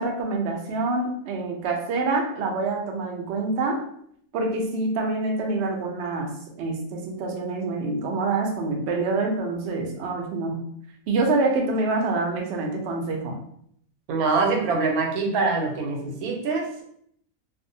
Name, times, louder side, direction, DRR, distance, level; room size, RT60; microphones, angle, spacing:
voice 1, 0.0-3.9 4.3-10.7 11.1-13.4, right 3 dB, 65° right, 2 dB, 0.7 m, -26 dB
voice 2, 14.1-16.8, right 4 dB, 85° right, 2 dB, 1.1 m, -24 dB
2.5 x 2.1 x 2.6 m, 0.67 s
omnidirectional pair, 1.5 m